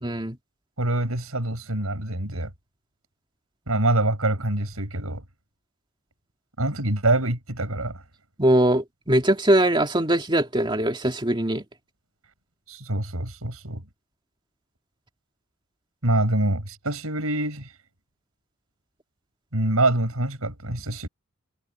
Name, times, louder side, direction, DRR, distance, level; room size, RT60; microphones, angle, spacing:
voice 1, 0.0-0.4 8.4-11.6, right 1 dB, 20° right, 2.5 m, -21 dB
voice 2, 0.8-2.5 3.7-5.2 6.6-8.0 12.7-13.8 16.0-17.7 19.5-21.1, right 2 dB, 90° right, 5.5 m, -25 dB
head